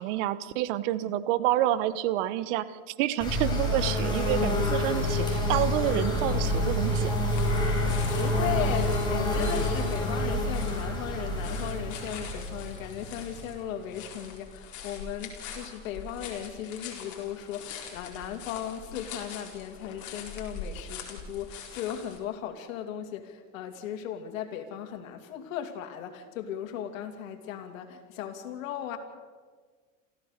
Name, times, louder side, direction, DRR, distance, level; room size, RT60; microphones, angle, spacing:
voice 1, 0.0-7.2, right 13 dB, 65° right, 15 dB, 1.3 m, -28 dB
sound 1, 3.2-13.8, left 1 dB, 10° left, 7.1 m, -28 dB
sound 2, 7.3-22.2, left 6 dB, 45° left, 4.4 m, -44 dB
voice 2, 7.8-29.0, left 9 dB, 80° left, 6 dB, 2.8 m, -37 dB
27.5 x 15.0 x 6.7 m, 1.5 s
supercardioid pair, 115°, 39 cm